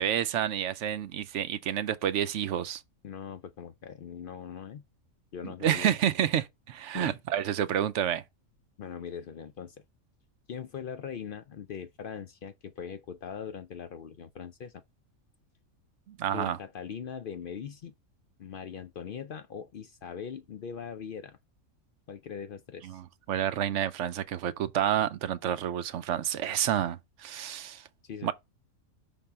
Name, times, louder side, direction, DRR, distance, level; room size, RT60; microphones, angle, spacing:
voice 1, 0.0-2.8 5.6-8.2 16.1-16.6 22.8-23.0 23.3-27.8 28.2-28.3, right 10 dB, 65° right, 0.8 m, -29 dB
voice 2, 3.0-4.8 5.3-6.0 6.9-7.2 8.8-9.8 10.5-14.8 16.3-17.9 18.4-21.4 22.1-23.0 28.0-28.3, left 7 dB, 75° left, 0.5 m, -41 dB
5.9 x 3.6 x 5.5 m
omnidirectional pair, 1.5 m